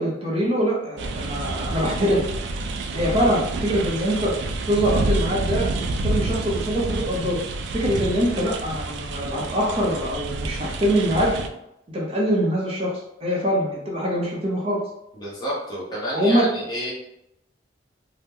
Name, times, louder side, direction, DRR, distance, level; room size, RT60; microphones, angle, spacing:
voice 1, 0.0-2.3 2.9-4.3 4.7-7.4 7.7-11.3 11.9-14.8 16.1-16.5, equal, 30° right, -3 dB, 0.6 m, -23 dB
sound 1, 1.0-11.5, right 2 dB, 70° right, 0.3 m, -28 dB
voice 2, 15.1-16.9, equal, 25° left, -6 dB, 0.9 m, -30 dB
2.8 x 2.1 x 3.5 m, 0.82 s
head